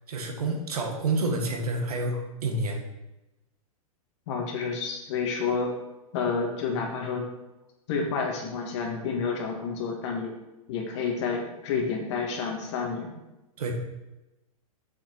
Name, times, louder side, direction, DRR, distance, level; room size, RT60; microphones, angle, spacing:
voice 1, 0.1-2.8 13.6-13.7, right 2 dB, 85° right, 2 dB, 1.9 m, -28 dB
voice 2, 4.3-5.7 6.1-7.2 7.9-10.3 10.7-13.1, left 5 dB, 50° left, 1 dB, 1.9 m, -29 dB
7.2 x 6.0 x 4.6 m, 1.0 s
hypercardioid pair, 150°, 19 cm